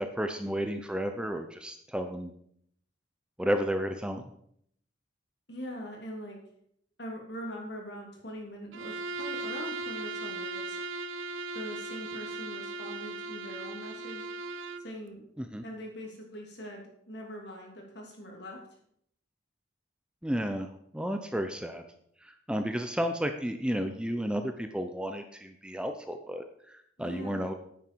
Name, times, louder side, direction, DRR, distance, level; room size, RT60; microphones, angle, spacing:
voice 1, 0.0-2.3 3.4-4.2 15.4-15.6 20.2-20.7 20.9-21.8 22.2-27.5, equal, 5° right, 6 dB, 0.5 m, -32 dB
voice 2, 5.5-6.4 7.0-10.8 11.5-14.3 14.8-15.3 15.6-18.6 27.0-27.5, equal, 60° left, 1 dB, 2.9 m, -42 dB
Bowed string instrument, 8.7-14.9, right 3 dB, 85° right, 0.6 m, -38 dB
9.4 x 9.1 x 4.5 m, 0.69 s
head